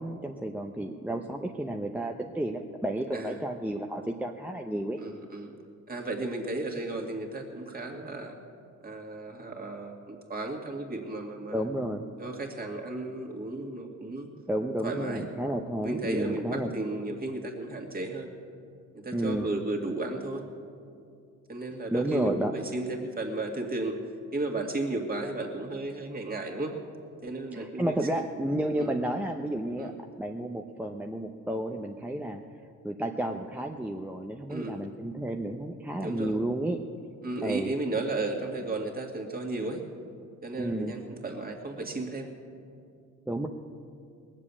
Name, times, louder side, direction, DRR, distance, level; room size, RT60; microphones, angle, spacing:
voice 1, 0.0-5.0 11.5-12.1 14.5-16.7 19.1-19.5 21.9-22.5 27.5-29.9 30.2-32.4 32.8-36.8 37.4-37.7 40.6-40.9 43.3-43.5, right 1 dB, 5° right, 2 dB, 0.7 m, -31 dB
voice 2, 5.0-5.5 5.9-8.3 8.8-11.6 12.2-14.3 14.8-15.3 15.8-18.3 18.9-20.4 21.5-24.0 24.3-26.7 27.2-27.9 28.8-28.9 29.8-29.9 34.5-34.8 36.0-36.4 37.2-39.8 40.4-42.3, right 2 dB, 30° right, 2 dB, 2.2 m, -34 dB
19.5 x 7.5 x 8.5 m, 2.4 s
cardioid pair, 90°, 30 cm